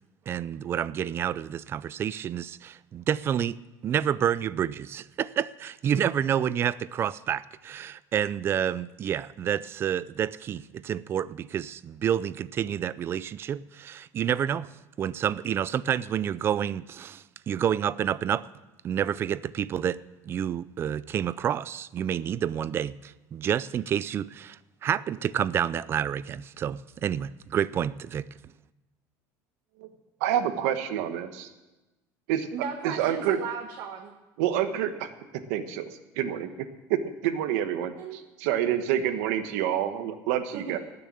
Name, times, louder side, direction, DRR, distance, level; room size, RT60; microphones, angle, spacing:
voice 1, 0.3-14.7 15.0-18.5 18.8-20.0 20.2-28.3, right 9 dB, 30° right, 19 dB, 0.4 m, -29 dB
voice 2, 30.2-31.5 32.3-32.5 32.8-33.4 34.4-35.1 35.5-35.9 36.1-40.8, right 10 dB, 85° right, 8 dB, 1.3 m, -28 dB
voice 3, 32.5-34.1 38.0-38.2 40.5-40.8, right 7 dB, 60° right, 1 dB, 1.6 m, -36 dB
18.5 x 6.8 x 8.7 m, 1.1 s
cardioid pair, 150°, 8 cm